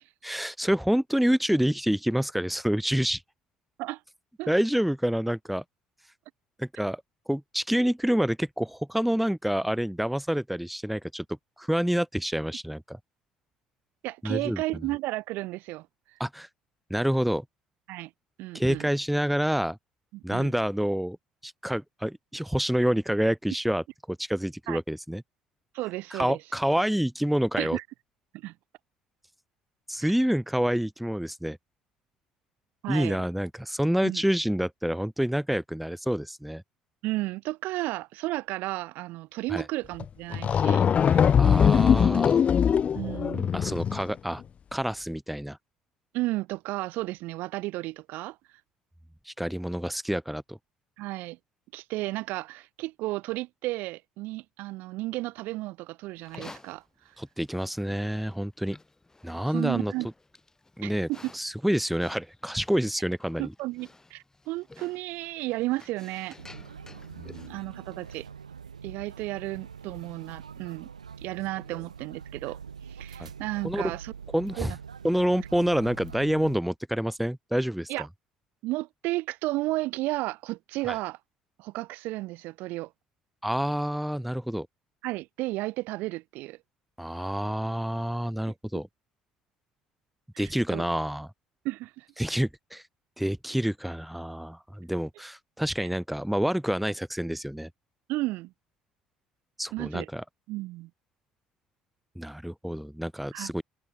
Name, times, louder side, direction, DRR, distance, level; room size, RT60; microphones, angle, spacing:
voice 1, 0.2-3.2 4.5-5.6 6.6-11.2 11.6-13.0 14.2-14.6 16.2-16.5 16.9-17.4 18.5-19.8 20.2-21.2 21.4-25.2 26.1-27.8 29.9-31.6 32.9-36.6 39.5-39.6 41.4-42.4 43.5-44.4 44.7-45.6 49.3-50.6 57.2-58.8 59.2-59.9 60.8-61.1 61.3-63.5 67.2-67.5 73.2-73.3 73.6-73.9 74.3-74.7 75.0-78.1 80.8-81.0 83.4-84.7 87.0-88.9 90.4-91.3 92.2-92.8 93.2-97.7 99.6-100.2 102.2-103.6, equal, ahead, 1.1 m, -28 dB
voice 2, 14.0-15.9 17.9-18.1 18.4-18.9 20.1-20.5 24.7-24.8 25.7-26.4 27.6-27.8 28.3-28.5 32.8-33.2 34.0-34.2 37.0-41.4 42.9-43.5 46.1-48.4 51.0-51.4 51.7-56.8 59.5-60.1 60.8-61.3 63.4-66.4 67.5-68.3 68.8-70.9 71.2-72.6 72.9-74.1 74.6-74.8 77.9-78.1 78.6-81.2 81.6-82.9 85.0-86.6 90.3-90.8 91.6-92.1 95.8-95.9 98.1-98.5 99.7-100.1 100.5-100.9 103.3-103.5, right 19 dB, 60° right, 0.6 m, -33 dB
sound 1, 40.0-40.1 40.3-44.1, left 7 dB, 35° left, 0.4 m, -21 dB
Livestock farm animals working animals, 56.2-68.4, left 2 dB, 15° left, 4.2 m, -52 dB
sound 2, 66.4-76.6, right 6 dB, 85° right, 1.0 m, -44 dB
open air
figure-of-eight pair, 55°, 4 cm